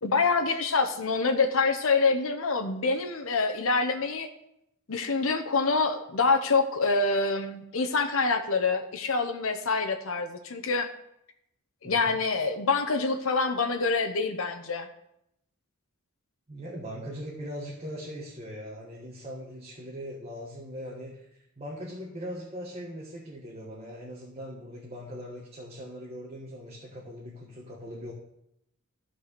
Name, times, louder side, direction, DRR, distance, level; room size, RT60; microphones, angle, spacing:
voice 1, 0.0-4.3 4.9-10.9 11.8-14.9, left 4 dB, 75° left, 6 dB, 0.9 m, -26 dB
voice 2, 11.8-12.1 16.5-28.1, equal, 30° right, -3 dB, 1.5 m, -40 dB
13.5 x 4.8 x 6.7 m, 0.80 s
head